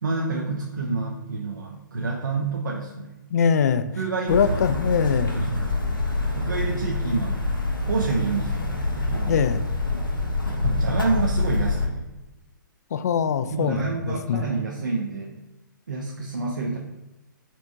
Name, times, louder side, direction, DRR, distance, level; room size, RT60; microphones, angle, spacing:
voice 1, 0.0-3.2 3.9-4.4 5.2-5.7 6.3-7.4 7.9-9.4 10.6-12.1 13.5-15.4 15.9-16.8, right 4 dB, 65° right, -1 dB, 0.7 m, -28 dB
voice 2, 3.3-3.8 4.3-5.4 9.3-9.6 12.9-14.4, left 7 dB, 50° left, 11 dB, 0.4 m, -22 dB
sound 1, 4.3-11.9, left 2 dB, 85° left, 1.0 m, -26 dB
4.5 x 4.4 x 2.6 m, 1.0 s
figure-of-eight pair, 120°, 11 cm